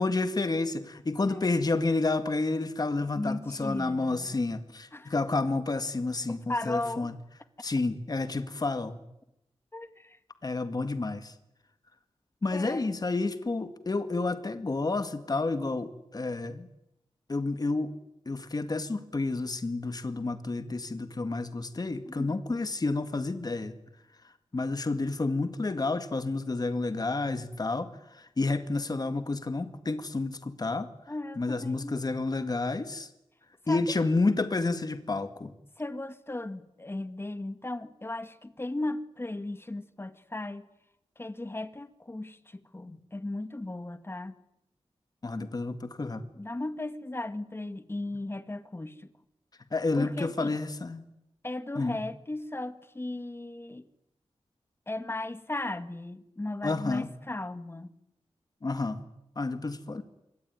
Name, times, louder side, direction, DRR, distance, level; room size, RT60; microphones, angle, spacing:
voice 1, 0.0-7.1 7.6-9.0 10.4-11.3 12.4-16.7 17.3-17.9 18.3-23.7 24.5-30.9 31.4-33.1 33.7-35.5 42.9-43.0 45.2-46.2 49.7-51.0 51.8-52.0 56.6-57.1 58.6-59.0 59.4-60.0, left 3 dB, 35° left, 2.0 m, -30 dB
voice 2, 3.1-4.3 4.9-5.1 6.3-7.1 9.7-10.2 12.5-12.9 22.1-22.4 31.1-32.0 33.7-33.8 35.8-40.7 41.2-44.3 46.3-49.1 50.0-50.6 51.4-53.9 54.9-57.9, left 2 dB, 20° left, 1.9 m, -36 dB
27.0 x 23.5 x 9.6 m
wide cardioid pair, 120°, 11 cm